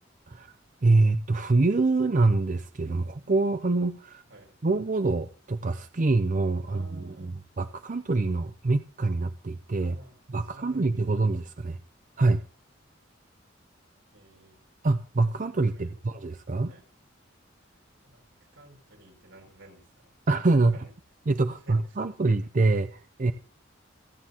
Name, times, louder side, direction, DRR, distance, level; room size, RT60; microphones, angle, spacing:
voice 1, 0.8-4.2 4.6-6.8 7.2-9.9 10.3-11.8 12.2-12.4 14.8-16.7 20.3-20.7 21.3-23.3, right 3 dB, 40° right, 0.6 m, -25 dB
voice 2, 6.6-7.4 9.8-10.1 10.4-11.3 14.1-14.6 15.7-15.9 16.6-16.8 17.7-17.8 18.1-18.2 18.5-20.1 20.7-20.9 21.5-22.0, right 1 dB, 90° right, 6.6 m, -51 dB
28.0 x 9.5 x 2.9 m
head